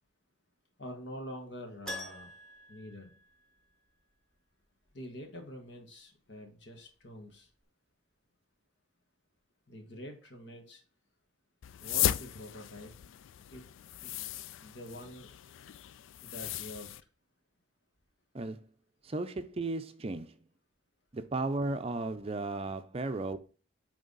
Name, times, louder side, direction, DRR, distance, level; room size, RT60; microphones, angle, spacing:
voice 1, 0.8-2.3 2.7-3.1 4.9-7.5 9.7-10.8 11.8-12.9 13.5-13.6 14.0-14.2 14.6-15.3 16.2-16.9, left 1 dB, 65° left, 1.5 m, -46 dB
Keyboard (musical), 1.9-4.2 7.0-7.1 7.3-7.4, left 1 dB, 5° left, 1.1 m, -45 dB
sound 1, 11.6-17.0, left 12 dB, 90° left, 0.3 m, -36 dB
voice 2, 19.0-20.4 21.1-23.4, right 2 dB, 30° right, 0.5 m, -35 dB
9.0 x 3.5 x 4.0 m
head